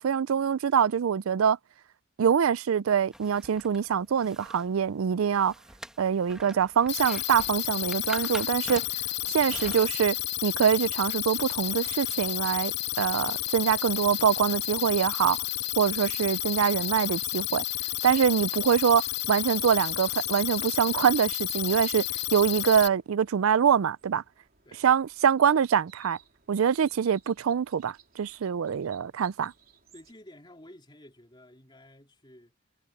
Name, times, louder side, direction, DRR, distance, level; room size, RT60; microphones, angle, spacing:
voice 1, 0.0-1.6 2.2-5.5 6.0-8.8 9.3-10.2 10.4-15.4 15.8-17.6 18.0-22.1 22.3-24.2 24.8-26.2 26.5-29.5, right 7 dB, 85° right, 0.4 m, -24 dB
sound 1, 3.1-15.2, equal, 5° right, 1.3 m, -48 dB
sound 2, 6.9-22.9, left 15 dB, 50° left, 0.5 m, -31 dB
sound 3, 18.3-30.1, right 7 dB, 45° right, 4.2 m, -60 dB
voice 2, 28.6-29.0 29.9-32.5, left 1 dB, 20° left, 3.4 m, -52 dB
head